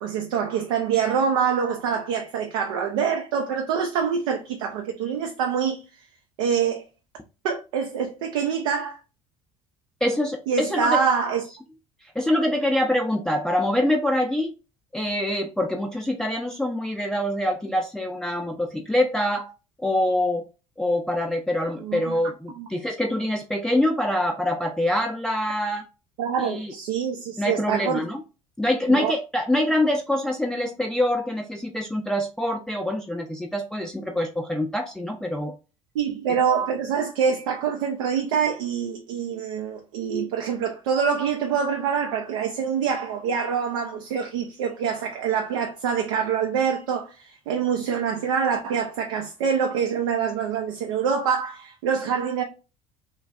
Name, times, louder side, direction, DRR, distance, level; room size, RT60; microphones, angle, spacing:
voice 1, 0.0-5.8 6.4-6.8 7.4-9.0 10.5-11.4 21.8-22.2 22.6-22.7 26.2-28.0 28.9-29.1 35.9-52.4, right 7 dB, 70° right, 0.5 m, -25 dB
voice 2, 10.0-11.0 12.1-14.5 14.9-19.5 19.8-20.5 20.8-25.8 26.4-26.7 27.4-28.2 28.6-35.5 36.3-36.4, left 1 dB, 5° left, 0.5 m, -25 dB
3.2 x 2.4 x 2.3 m
figure-of-eight pair, 60°, 18 cm